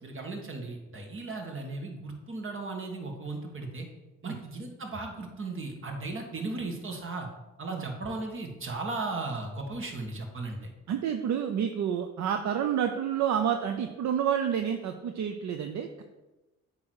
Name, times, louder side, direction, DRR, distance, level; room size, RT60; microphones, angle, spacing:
voice 1, 0.0-3.9 4.2-7.3 7.6-10.7, right 3 dB, 45° right, 3 dB, 1.6 m, -36 dB
voice 2, 10.9-16.0, right 8 dB, 65° right, 6 dB, 0.6 m, -29 dB
8.6 x 3.1 x 6.4 m, 1.1 s
cardioid pair, 90°, 30 cm